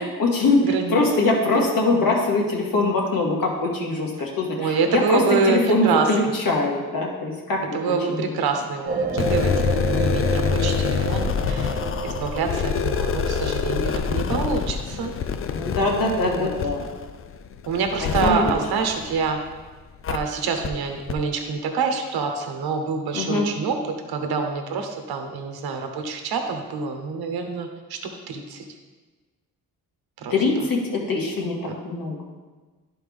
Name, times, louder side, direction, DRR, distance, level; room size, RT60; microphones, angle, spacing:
voice 1, 0.0-5.2 5.5-7.8 8.1-8.2 15.5-16.8 18.0-18.5 23.1-23.5 30.3-32.2, left 2 dB, 60° left, -1 dB, 1.8 m, -22 dB
voice 2, 0.6-1.0 4.6-6.1 7.7-15.1 16.2-16.5 17.7-19.4 20.1-23.8 24.1-28.0 28.3-28.6 30.2-30.3, right 5 dB, 75° right, 4 dB, 1.0 m, -26 dB
sound 1, 8.9-14.0, right 3 dB, 25° right, 0.9 m, -30 dB
sound 2, 9.1-19.5 20.0-20.2 20.6-20.7 21.1-21.2, left 6 dB, 35° left, 0.5 m, -26 dB
11.0 x 4.4 x 3.5 m, 1.3 s
cardioid pair, 65°, 38 cm